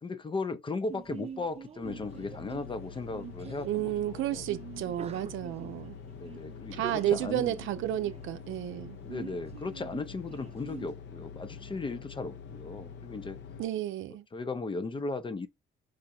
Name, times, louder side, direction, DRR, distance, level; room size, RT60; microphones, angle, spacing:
voice 1, 0.0-4.4 6.1-7.5 9.0-13.4 14.3-15.5, left 3 dB, 25° left, 0.5 m, -36 dB
Sneeze, 0.9-10.9, right 7 dB, 30° right, 0.4 m, -47 dB
sound 1, 1.8-13.6, left 6 dB, 65° left, 0.8 m, -46 dB
voice 2, 3.6-6.0 6.7-9.0 13.6-14.3, right 12 dB, 80° right, 0.6 m, -32 dB
4.9 x 2.3 x 4.2 m
cardioid pair, 90°, 20 cm